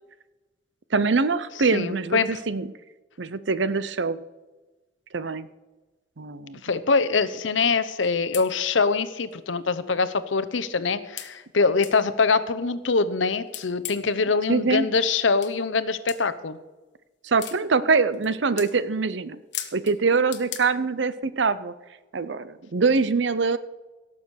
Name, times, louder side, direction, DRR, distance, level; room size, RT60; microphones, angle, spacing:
voice 1, 0.9-2.7 3.2-4.2 5.1-5.5 6.2-6.6 14.5-14.9 17.2-19.4 19.7-21.7 22.1-23.6, right 4 dB, 70° right, 15 dB, 0.7 m, -24 dB
voice 2, 1.7-2.4 6.6-16.6, left 4 dB, 85° left, 14 dB, 0.8 m, -24 dB
sound 1, 8.0-8.1 8.3-8.5 9.3-9.4 9.9-10.0 11.2-11.3 11.8-12.0 13.5-14.1 15.4-15.5 16.1-16.2 17.4-17.6 18.1-18.3 18.6-18.7 19.5-20.0 20.3-20.6, left 11 dB, 65° left, 1.4 m, -35 dB
17.5 x 7.1 x 6.3 m, 1.1 s
head